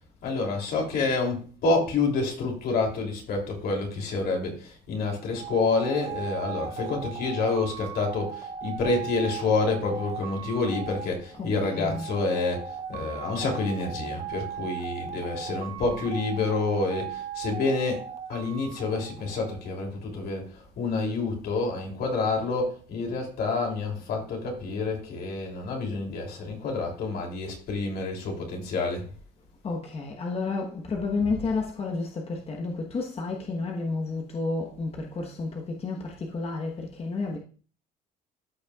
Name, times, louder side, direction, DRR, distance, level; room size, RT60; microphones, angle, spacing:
voice 1, 0.2-29.1, left 3 dB, 70° left, 3.0 m, -28 dB
sound 1, 5.4-19.8, right 7 dB, 40° right, 1.0 m, -38 dB
voice 2, 29.6-37.4, left 3 dB, 35° left, 1.2 m, -31 dB
13.5 x 5.5 x 2.4 m
cardioid pair, 110°, 17 cm